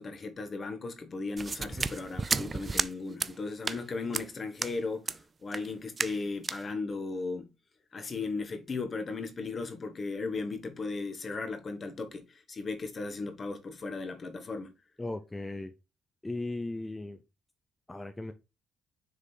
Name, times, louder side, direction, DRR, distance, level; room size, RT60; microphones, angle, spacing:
voice 1, 0.0-7.5 7.9-14.7, left 3 dB, 40° left, 1.5 m, -36 dB
sound 1, 1.4-2.9 3.2-3.3 3.7-3.8 4.1-4.3 4.6-4.7 5.1-5.2 5.5-5.7 6.0-6.2 6.4-6.6, right 4 dB, 30° right, 0.5 m, -32 dB
voice 2, 15.0-15.7 16.2-17.2 17.9-18.3, left 2 dB, 15° left, 0.7 m, -37 dB
6.6 x 3.8 x 4.6 m
cardioid pair, 90°, 0 cm